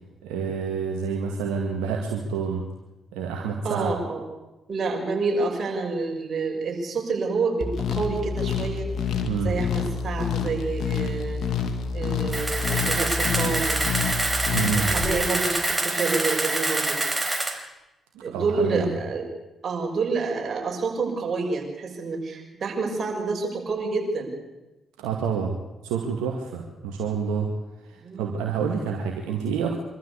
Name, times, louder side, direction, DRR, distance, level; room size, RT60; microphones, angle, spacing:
voice 1, 0.2-2.6 3.1-3.9 9.3-9.5 14.5-14.9 18.1-18.9 25.0-25.5 25.8-27.5 27.8-29.8, right 6 dB, 80° right, 1 dB, 2.1 m, -28 dB
voice 2, 3.6-4.2 4.7-8.9 9.4-11.4 11.9-13.8 14.7-17.0 18.2-19.3 19.6-24.4 28.0-28.4, right 4 dB, 50° right, 0 dB, 6.2 m, -28 dB
sound 1, 7.6-15.1, left 6 dB, 65° left, 2.6 m, -28 dB
Camera, 12.3-17.5, right 2 dB, 20° right, 4.2 m, -26 dB
24.5 x 13.5 x 8.3 m, 1.0 s
hypercardioid pair, 45°, 0 cm